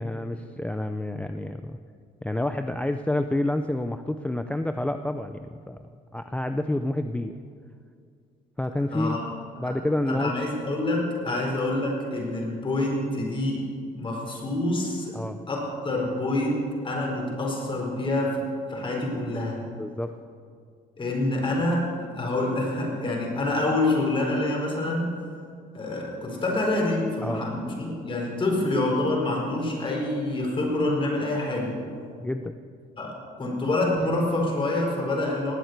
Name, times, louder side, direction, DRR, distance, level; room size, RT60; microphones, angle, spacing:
voice 1, 0.0-1.8 2.2-5.8 6.1-7.4 8.6-9.2 9.6-10.3 11.3-11.4 15.1-15.4 19.8-20.1 27.2-27.5 32.2-32.5, left 1 dB, 5° left, 8 dB, 0.5 m, -28 dB
voice 2, 8.9-9.2 9.6-9.7 10.1-15.2 15.5-19.6 21.0-25.2 25.7-31.8 33.0-35.5, left 2 dB, 30° left, -1 dB, 4.5 m, -27 dB
19.0 x 8.0 x 8.1 m, 2.2 s
cardioid pair, 110°, 17 cm